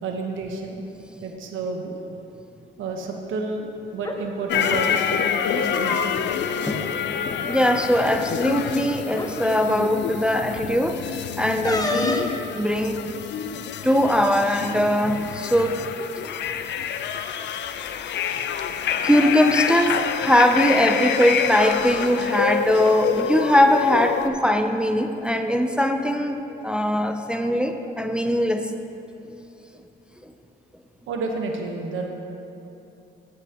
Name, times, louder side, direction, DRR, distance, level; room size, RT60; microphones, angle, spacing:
voice 1, 0.0-0.8 1.2-1.9 2.8-6.2 31.1-32.1, right 3 dB, 80° right, 2 dB, 1.0 m, -30 dB
sound 1, 3.9-4.2 5.4-6.3 6.6-6.8 7.2-7.4 8.4-8.5 9.1-9.4 11.6-12.4, left 2 dB, 20° left, 0.9 m, -28 dB
sound 2, 4.5-24.3, left 8 dB, 65° left, 0.5 m, -27 dB
voice 2, 7.5-13.0 13.8-15.8 16.2-16.3 19.0-28.7, equal, 5° right, 6 dB, 0.5 m, -21 dB
13.5 x 8.0 x 2.9 m, 2.8 s
cardioid pair, 90°, 20 cm